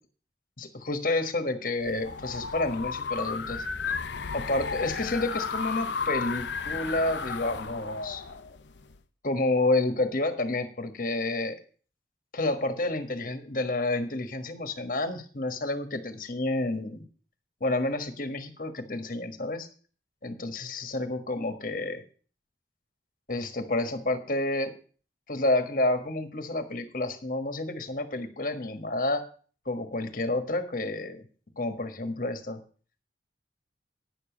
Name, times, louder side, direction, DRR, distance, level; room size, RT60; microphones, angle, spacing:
voice 1, 0.6-3.6 4.3-8.2 9.2-11.6 12.3-17.1 17.6-19.7 20.2-22.0 23.3-24.7 25.3-29.2 29.7-31.2 31.6-32.6, left 2 dB, 50° left, 8 dB, 1.4 m, -29 dB
sound 1, 1.8-9.0, left 5 dB, 85° left, 0.7 m, -33 dB
10.0 x 7.0 x 7.0 m, 0.41 s
head